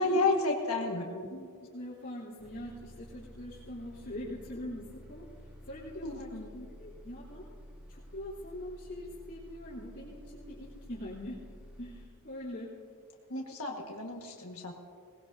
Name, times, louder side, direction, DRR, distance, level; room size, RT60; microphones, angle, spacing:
voice 1, 0.0-1.1 6.0-6.5 13.3-14.7, left 2 dB, 75° left, 0 dB, 1.6 m, -31 dB
voice 2, 0.9-1.5 1.7-5.3 5.7-7.4 7.9-11.4 11.8-12.7, left 1 dB, 50° left, -9 dB, 3.6 m, -43 dB
Bus, 2.4-12.1, equal, 5° right, 1.4 m, -51 dB
22.5 x 19.5 x 2.7 m, 2.2 s
head